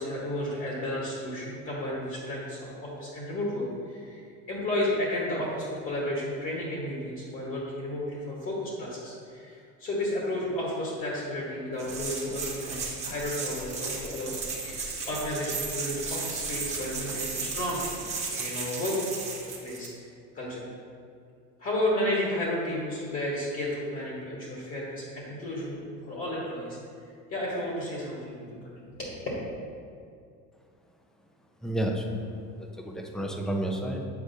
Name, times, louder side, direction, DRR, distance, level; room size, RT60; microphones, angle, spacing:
voice 1, 0.0-20.1 20.3-20.7 21.6-26.8 27.3-29.1, left 1 dB, 40° left, -5 dB, 1.3 m, -32 dB
sound 1, 11.8-19.9, right 4 dB, 20° right, 0.9 m, -35 dB
sound 2, 11.9-18.2, right 1 dB, 85° right, 1.0 m, -46 dB
voice 2, 31.6-32.2 32.6-34.1, right 1 dB, ahead, 2 dB, 0.4 m, -31 dB
8.2 x 4.7 x 2.7 m, 2.4 s
cardioid pair, 140°, 34 cm